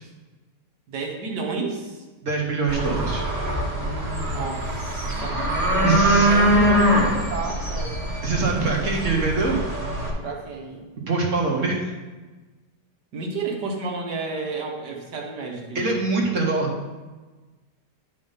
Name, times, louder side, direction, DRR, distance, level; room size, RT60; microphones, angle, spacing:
voice 1, 0.9-2.0 3.8-5.4 5.7-8.0 10.2-10.9 13.1-15.8, right 3 dB, 70° right, 1 dB, 1.7 m, -31 dB
voice 2, 2.2-3.2 5.8-6.3 8.2-9.6 11.1-11.9 15.7-16.7, right 3 dB, 50° right, -1 dB, 1.3 m, -23 dB
sound 1, 2.7-10.1, equal, 20° right, 1.8 m, -23 dB
10.5 x 3.5 x 5.5 m, 1.3 s
omnidirectional pair, 1.9 m